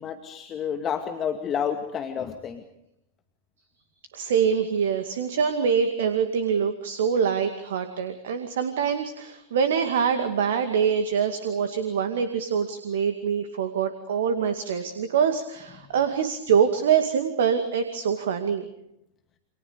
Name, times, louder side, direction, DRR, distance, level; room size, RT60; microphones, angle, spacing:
voice 1, 0.0-2.6, left 8 dB, 25° left, 5 dB, 2.3 m, -30 dB
voice 2, 4.1-18.7, right 7 dB, 60° right, 8 dB, 2.2 m, -24 dB
29.5 x 27.5 x 5.1 m, 0.81 s
figure-of-eight pair, 90°, 0 cm